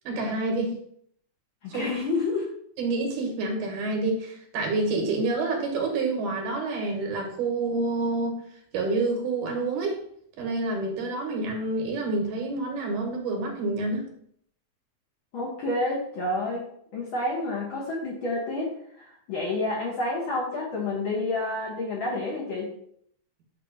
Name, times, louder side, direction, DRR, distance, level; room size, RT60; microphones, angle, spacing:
voice 1, 0.0-0.8 1.7-1.9 2.8-8.4 8.7-10.0 10.4-14.1, right 3 dB, 85° right, 1 dB, 2.8 m, -28 dB
voice 2, 1.6-2.5 15.3-22.7, left 2 dB, 60° left, -3 dB, 1.4 m, -29 dB
8.2 x 2.8 x 5.1 m, 0.67 s
omnidirectional pair, 3.5 m